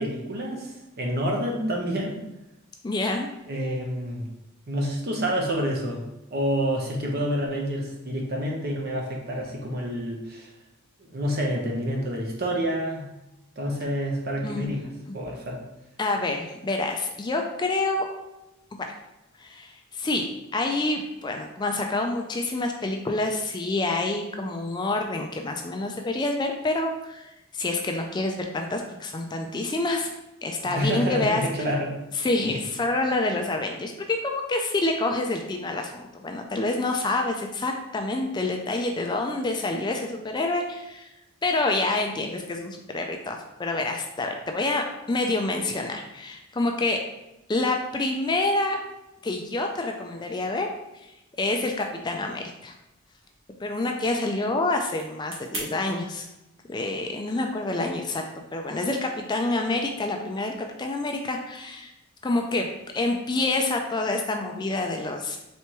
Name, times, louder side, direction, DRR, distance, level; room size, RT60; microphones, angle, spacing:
voice 1, 0.0-2.2 3.5-4.2 4.7-6.0 6.3-10.5 11.0-13.1 13.6-14.8 15.1-15.6 30.6-32.0 32.4-32.6, equal, 50° right, 0 dB, 0.9 m, -28 dB
voice 2, 2.8-3.3 14.4-14.7 16.0-18.0 19.4-30.1 30.4-31.4 32.2-41.1 41.4-47.0 47.5-48.8 49.2-50.7 51.4-52.7 53.6-56.3 56.7-58.2 58.5-61.9 62.2-62.7 62.9-65.4, left 2 dB, 20° left, 3 dB, 0.3 m, -27 dB
sound 1, 51.5-55.7, right 2 dB, 65° right, 1.3 m, -43 dB
4.3 x 3.4 x 3.0 m, 0.95 s
head